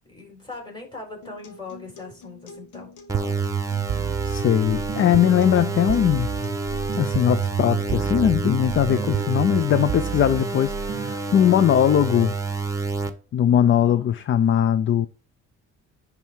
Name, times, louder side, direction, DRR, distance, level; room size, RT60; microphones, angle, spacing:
voice 1, 0.1-3.4 8.9-9.7 11.3-11.8 13.5-14.2, left 2 dB, 15° left, 4.4 m, -41 dB
Acoustic guitar, 1.2-9.2, left 4 dB, 85° left, 1.3 m, -47 dB
sound 1, 3.1-13.1, right 3 dB, 10° right, 1.0 m, -29 dB
sound 2, 3.1-11.2, right 12 dB, 50° right, 0.4 m, -31 dB
voice 2, 4.2-6.3 7.0-12.4 13.3-15.1, left 10 dB, 40° left, 0.4 m, -20 dB
10.5 x 3.6 x 4.5 m
cardioid pair, 90°, 30 cm